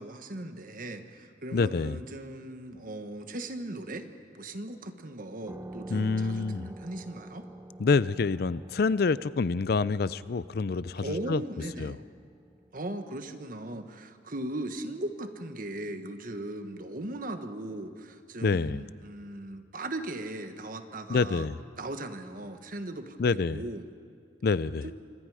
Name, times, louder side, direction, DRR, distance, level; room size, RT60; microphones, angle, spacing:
voice 1, 0.0-4.1 4.3-7.5 11.0-12.0 12.7-21.5 21.8-23.8 24.8-24.9, right 1 dB, 50° right, 8 dB, 1.4 m, -38 dB
voice 2, 1.5-2.0 5.9-6.7 7.8-11.4 11.8-12.0 18.4-18.8 21.1-21.6 23.2-23.6 24.4-24.9, left 4 dB, 60° left, 17 dB, 0.5 m, -27 dB
sound 1, 5.5-14.7, right 1 dB, 15° right, 0.5 m, -48 dB
27.0 x 25.5 x 4.9 m, 2.2 s
head